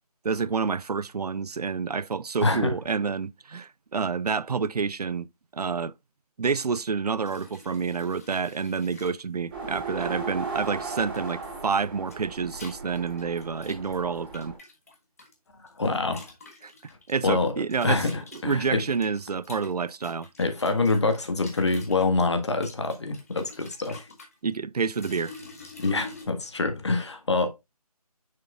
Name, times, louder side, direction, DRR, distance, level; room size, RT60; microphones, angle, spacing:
voice 1, 0.2-5.3 5.5-5.9 6.4-14.5 16.6-16.7 17.1-18.0 18.4-20.3 24.4-25.3, right 5 dB, 85° right, 0.5 m, -28 dB
voice 2, 2.4-2.8 15.8-16.3 17.2-17.5 17.8-18.9 20.4-24.1 25.8-27.5, left 3 dB, 45° left, 1.6 m, -25 dB
sound 1, 7.2-9.1 9.9-10.2 11.1-11.5 11.8-15.3 15.7-17.1 17.7-22.1 22.5-24.3 24.9-26.3, left 3 dB, 25° left, 1.3 m, -46 dB
sound 2, 9.5-14.6, right 4 dB, 15° right, 2.9 m, -37 dB
7.0 x 6.6 x 2.4 m
figure-of-eight pair, 170°, 19 cm